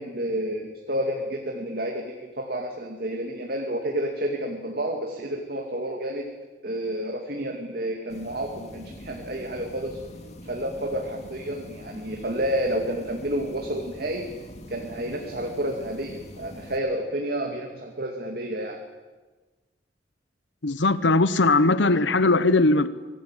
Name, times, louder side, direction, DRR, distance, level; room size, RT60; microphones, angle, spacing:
voice 1, 0.0-6.2 6.6-10.0 10.4-14.3 14.7-18.8, right 1 dB, 55° right, 2 dB, 2.5 m, -30 dB
sound 1, 8.1-16.8, equal, 35° left, 2.2 m, -44 dB
voice 2, 20.6-22.9, left 2 dB, 80° left, 14 dB, 1.0 m, -19 dB
24.0 x 18.5 x 9.1 m, 1.3 s
head